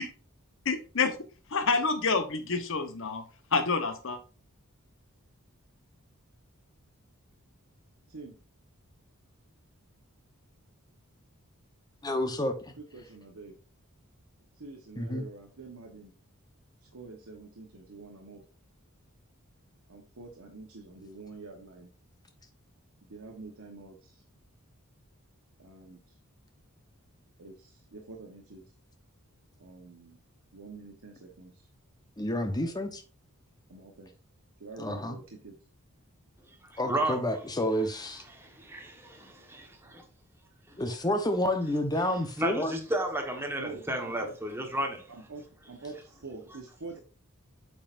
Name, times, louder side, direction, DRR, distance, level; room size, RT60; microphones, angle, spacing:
voice 1, 0.6-1.1 1.5-3.2 3.5-4.2, left 4 dB, 60° left, 1.0 m, -28 dB
voice 2, 8.1-8.4 12.8-13.6 14.6-16.1 16.8-18.4 19.9-21.9 23.1-24.2 25.6-26.2 27.4-28.6 29.6-30.2 30.5-31.7 32.4-32.7 33.7-34.1 34.6-35.6 43.6-44.3 45.1-47.0, right 3 dB, 75° right, 1.2 m, -46 dB
voice 3, 12.0-12.5 15.0-15.2 32.2-33.0 34.8-35.2 36.8-38.2 40.8-42.7, left 1 dB, 20° left, 0.9 m, -29 dB
voice 4, 36.7-37.2 38.7-40.0 42.4-45.1, right 1 dB, 10° right, 1.4 m, -32 dB
8.7 x 5.8 x 2.6 m
head